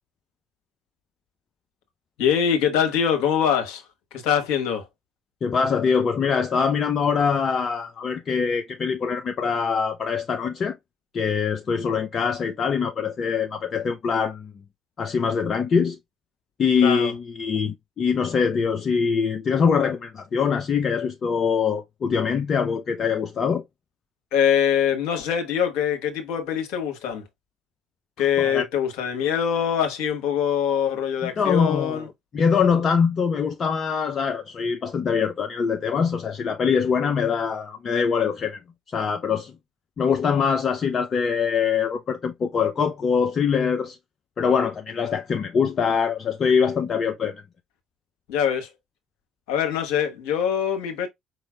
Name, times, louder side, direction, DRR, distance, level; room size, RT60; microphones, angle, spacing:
voice 1, 2.2-4.9 16.8-17.1 24.3-27.2 28.2-32.1 48.3-48.7 49.5-51.1, left 8 dB, 60° left, 1.3 m, -23 dB
voice 2, 5.4-10.8 11.1-14.5 15.0-16.0 16.6-23.6 28.2-28.6 31.2-32.1 32.3-38.6 38.9-39.5 40.0-44.0 44.4-47.4, left 6 dB, 40° left, 0.5 m, -23 dB
5.2 x 3.0 x 2.3 m
figure-of-eight pair, 50°, 0 cm